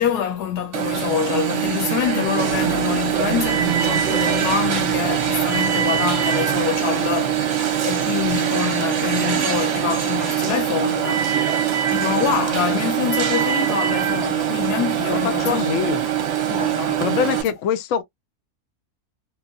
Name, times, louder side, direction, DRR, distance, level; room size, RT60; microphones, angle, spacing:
voice 1, 0.0-11.4 11.9-15.7 16.5-17.0, left 9 dB, 85° left, 1.3 m, -26 dB
Alarm, 0.7-17.4, right 10 dB, 60° right, 0.9 m, -22 dB
sound 1, 2.3-8.2, right 5 dB, 80° right, 0.5 m, -35 dB
voice 2, 15.1-16.0 17.0-18.0, left 8 dB, 70° left, 0.8 m, -23 dB
3.0 x 2.2 x 2.5 m
omnidirectional pair, 1.7 m